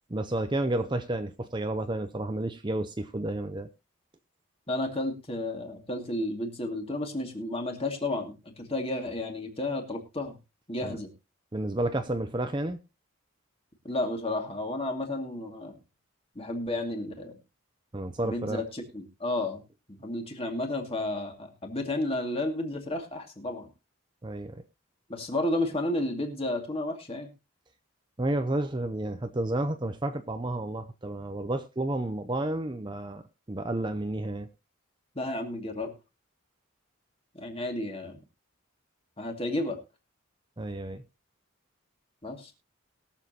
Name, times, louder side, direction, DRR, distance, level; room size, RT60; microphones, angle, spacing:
voice 1, 0.1-3.7 10.8-11.0 11.5-12.8 17.9-18.6 24.2-24.6 28.2-33.2 33.5-34.5 40.6-41.0, right 1 dB, 20° right, 0.6 m, -31 dB
voice 2, 4.7-10.4 10.7-11.1 13.8-15.8 16.4-17.4 18.2-19.6 19.9-23.7 25.1-27.3 35.1-35.9 37.3-38.2 39.2-39.8 42.2-42.5, left 1 dB, 25° left, 2.3 m, -32 dB
22.0 x 7.3 x 2.9 m
head